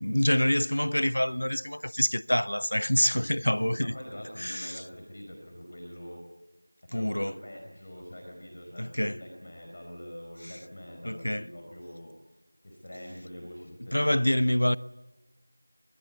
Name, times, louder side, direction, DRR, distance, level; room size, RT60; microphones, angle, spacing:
voice 1, 0.0-3.9 4.4-4.8 6.9-7.4 8.8-9.2 11.0-11.5 13.9-14.8, left 1 dB, 80° left, 0.9 m, -26 dB
voice 2, 2.9-6.2 6.8-12.2 12.6-14.0, equal, 35° left, 4.7 m, -44 dB
24.0 x 21.0 x 8.3 m
figure-of-eight pair, 175°, 0 cm